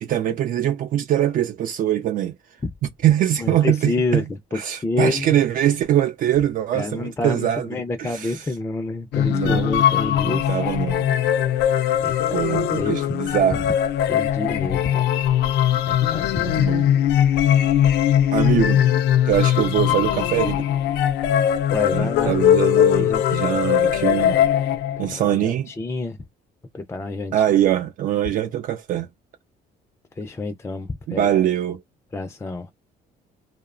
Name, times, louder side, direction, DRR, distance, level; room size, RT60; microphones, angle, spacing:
voice 1, 0.0-2.4 2.8-4.2 4.5-8.5 9.2-9.7 10.2-11.1 12.3-13.7 16.5-16.9 18.3-18.8 19.3-20.6 21.9-24.4 25.0-25.7 27.3-29.1 31.1-31.8, right 11 dB, 55° right, 0.4 m, -22 dB
voice 2, 3.4-5.4 6.7-10.5 12.0-12.9 14.1-15.0 15.9-16.6 21.7-23.2 24.2-24.4 25.0-26.2 26.7-27.3 30.2-31.3 32.1-32.7, left 2 dB, 15° left, 0.4 m, -28 dB
sound 1, 9.1-25.2, left 10 dB, 80° left, 0.5 m, -20 dB
2.7 x 2.1 x 2.4 m
cardioid pair, 110°, 17 cm